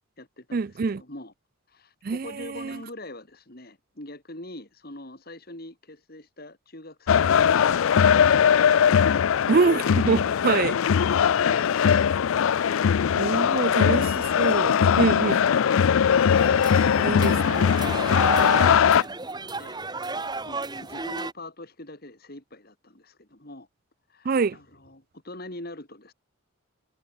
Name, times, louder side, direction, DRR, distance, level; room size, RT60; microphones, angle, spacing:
voice 1, 0.0-1.3 1.7-9.5 13.2-14.1 18.3-19.2 19.6-19.8 20.4-23.7 24.1-26.1, left 1 dB, 45° left, 3.5 m, -43 dB
voice 2, 0.5-1.0 2.0-2.8 9.5-10.8 13.2-14.0 14.4-15.4 17.0-17.7 24.2-24.6, right 4 dB, 45° right, 0.4 m, -25 dB
sound 1, 7.1-19.0, left 7 dB, 75° left, 0.4 m, -20 dB
sound 2, 16.3-21.3, right 3 dB, 20° right, 2.2 m, -33 dB
head